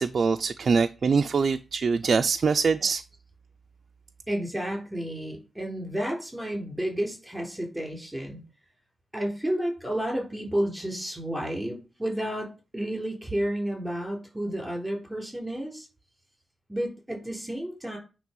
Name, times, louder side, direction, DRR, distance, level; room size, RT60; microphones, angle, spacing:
voice 1, 0.0-3.0, right 5 dB, 50° right, 0.3 m, -24 dB
voice 2, 4.3-8.4 9.1-15.9 16.7-18.0, right 1 dB, 5° right, 3.4 m, -31 dB
9.3 x 3.3 x 5.2 m
wide cardioid pair, 125°, 0 cm